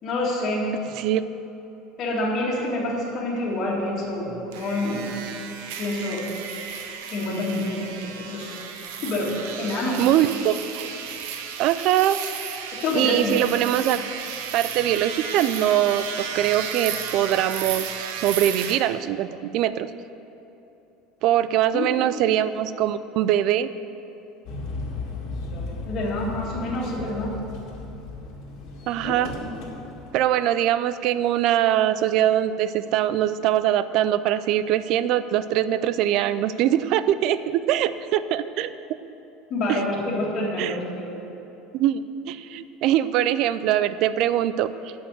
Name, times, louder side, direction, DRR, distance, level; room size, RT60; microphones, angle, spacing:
voice 1, 0.0-0.9 2.0-5.2 5.8-6.3 7.1-8.6 8.9-10.1 12.7-13.5 21.7-21.9 25.9-27.4 29.0-29.1 39.5-41.1, left 2 dB, 40° left, -5 dB, 2.0 m, -27 dB
sound 1, 4.5-18.8, right 7 dB, 85° right, 0.9 m, -34 dB
voice 2, 10.0-10.9 11.6-12.2 12.9-14.0 14.5-16.0 16.3-19.9 21.2-23.7 28.9-29.3 30.1-38.7 39.7-39.8 40.6-40.8 41.7-44.7, right 12 dB, 50° right, 14 dB, 0.4 m, -22 dB
sound 2, 24.5-30.1, left 2 dB, 55° left, 1.9 m, -35 dB
9.0 x 6.4 x 8.1 m, 3.0 s
cardioid pair, 155°, 0 cm